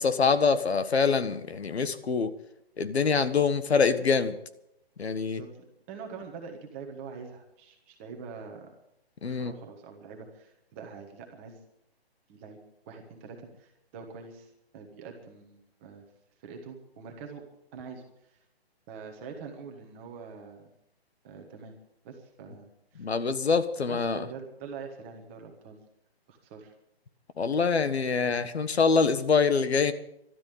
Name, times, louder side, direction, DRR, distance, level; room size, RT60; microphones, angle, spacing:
voice 1, 0.0-2.3 2.8-4.4 5.0-5.4 9.2-9.5 23.0-24.2 27.4-29.9, left 5 dB, 85° left, 11 dB, 1.6 m, -25 dB
voice 2, 5.3-8.7 9.2-11.6 12.3-12.6 12.9-16.0 16.4-17.4 17.7-18.4 18.9-20.7 21.2-21.7 22.0-23.1 23.9-25.8 26.3-26.7, right 5 dB, 10° right, 2 dB, 1.3 m, -44 dB
12.5 x 12.5 x 8.4 m, 0.78 s
hypercardioid pair, 175°, 31 cm